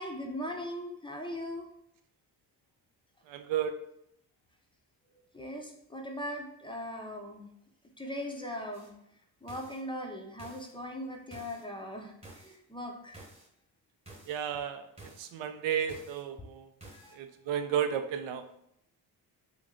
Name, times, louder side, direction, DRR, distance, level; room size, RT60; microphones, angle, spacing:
voice 1, 0.0-1.7 5.3-7.5 8.0-8.9 9.4-13.3 16.4-16.5 16.9-17.2, left 1 dB, 10° left, 1 dB, 0.5 m, -39 dB
voice 2, 3.3-3.8 14.3-16.7 17.1-18.4, right 8 dB, 75° right, 8 dB, 0.5 m, -33 dB
sound 1, 8.7-8.9 9.5-9.8 10.4-10.7 11.3-11.6 12.2-12.6 13.1-13.5 14.1-14.4 15.0-15.3 15.9-16.2 16.8-17.1, right 2 dB, 15° right, 0.9 m, -51 dB
3.0 x 2.6 x 3.6 m, 0.74 s
supercardioid pair, 75°, 47 cm